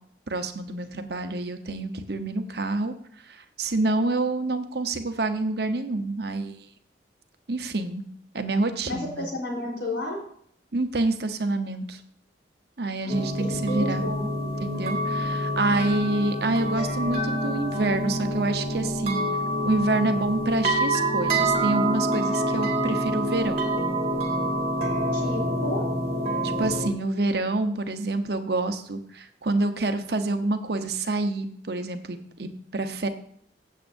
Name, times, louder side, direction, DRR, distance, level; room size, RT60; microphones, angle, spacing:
voice 1, 0.3-2.9 3.2-6.6 7.5-8.1 8.3-9.3 10.7-12.0 12.8-14.1 14.6-19.2 19.6-23.6 26.4-33.1, right 2 dB, 60° right, 7 dB, 0.9 m, -27 dB
voice 2, 8.8-10.2 13.0-14.3 25.1-25.9, left 1 dB, 75° left, -2 dB, 3.9 m, -32 dB
sound 1, 13.1-26.9, right 1 dB, 35° right, 2.0 m, -27 dB
16.0 x 7.5 x 2.6 m, 0.65 s
head